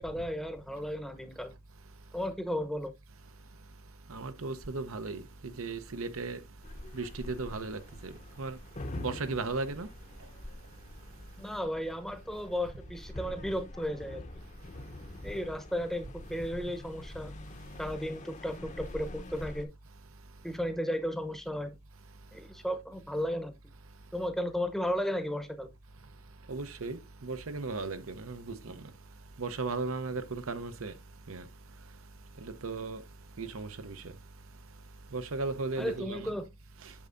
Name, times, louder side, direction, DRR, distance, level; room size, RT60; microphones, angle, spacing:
voice 1, 0.0-1.5 2.1-2.9 11.4-14.2 15.2-17.3 17.8-19.7 20.4-21.8 22.3-23.5 24.1-25.7 35.8-36.5, equal, ahead, 0.8 m, -34 dB
voice 2, 4.1-6.4 6.9-8.1 8.4-8.6 9.0-9.9 26.5-28.8 29.4-30.9 31.3-31.4 32.4-33.0 33.4-34.0 35.1-36.3, right 3 dB, 80° right, 0.9 m, -36 dB
sound 1, 6.6-19.7, left 1 dB, 35° left, 0.8 m, -45 dB
8.7 x 6.8 x 2.6 m
head